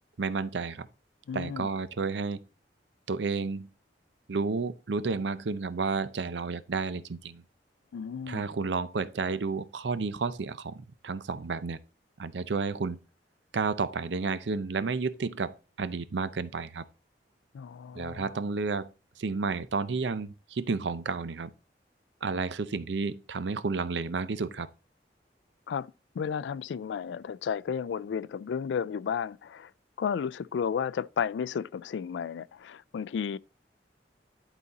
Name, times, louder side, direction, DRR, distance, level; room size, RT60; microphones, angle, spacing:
voice 1, 0.2-0.9 1.3-2.4 3.1-3.7 4.3-7.4 8.3-11.8 12.2-13.0 13.5-16.8 18.0-18.9 19.2-21.5 22.2-24.7, right 4 dB, 80° right, 0.6 m, -31 dB
voice 2, 1.3-1.7 7.9-8.5 17.5-18.4 25.7-29.7 30.0-33.4, left 7 dB, 85° left, 0.3 m, -33 dB
11.0 x 4.1 x 4.0 m
head